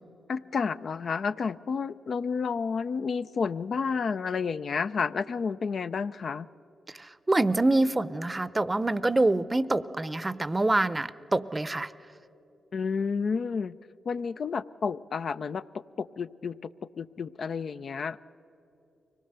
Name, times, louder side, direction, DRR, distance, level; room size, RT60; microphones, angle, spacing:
voice 1, 0.3-6.5 12.7-13.7 14.1-18.2, left 5 dB, 65° left, 12 dB, 0.4 m, -31 dB
voice 2, 7.0-11.9, right 2 dB, 25° right, 17 dB, 0.6 m, -26 dB
24.0 x 18.5 x 6.7 m, 2.9 s
supercardioid pair, 45°, 0 cm